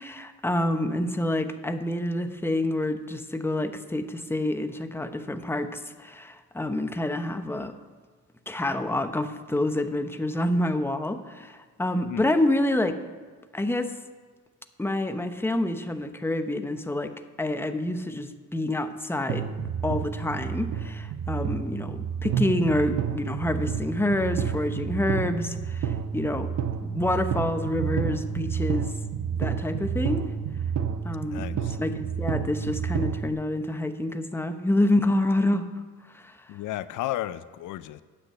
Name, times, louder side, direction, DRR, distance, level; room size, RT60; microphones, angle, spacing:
voice 1, 0.0-7.7 8.5-13.0 13.5-13.9 14.8-17.1 17.4-19.5 19.8-26.5 26.8-28.9 29.4-30.3 31.0-35.7 36.1-36.3, left 1 dB, 10° left, 8 dB, 0.9 m, -27 dB
sound 1, 19.3-33.3, right 7 dB, 65° right, 0.9 m, -30 dB
voice 2, 31.3-31.7 36.5-38.0, left 14 dB, 85° left, 15 dB, 0.5 m, -33 dB
9.7 x 8.3 x 7.9 m, 1.5 s
cardioid pair, 90°, 30 cm